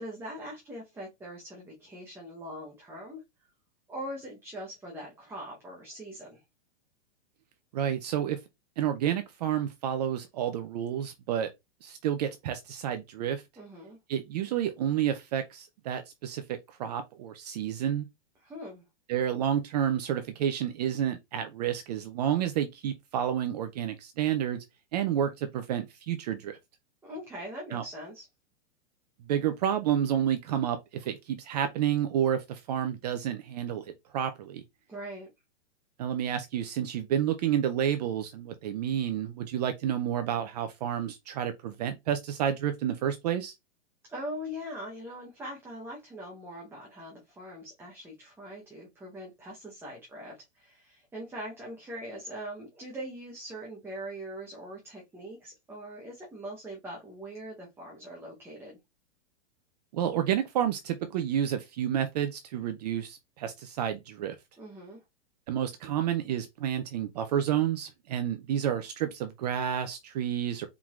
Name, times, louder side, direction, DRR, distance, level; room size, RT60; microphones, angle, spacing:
voice 1, 0.0-3.2 3.9-6.4 13.6-14.0 18.4-18.8 27.0-28.3 34.9-35.3 44.1-58.8 64.6-65.0, equal, 5° right, 0.9 m, -42 dB
voice 2, 7.7-8.4 8.8-11.5 11.8-13.4 14.1-18.1 19.1-24.6 24.9-26.6 27.7-27.8 29.3-34.6 36.0-43.5 59.9-64.4 65.5-70.7, right 10 dB, 35° right, 0.5 m, -30 dB
4.5 x 3.8 x 2.4 m
hypercardioid pair, 155°, 35 cm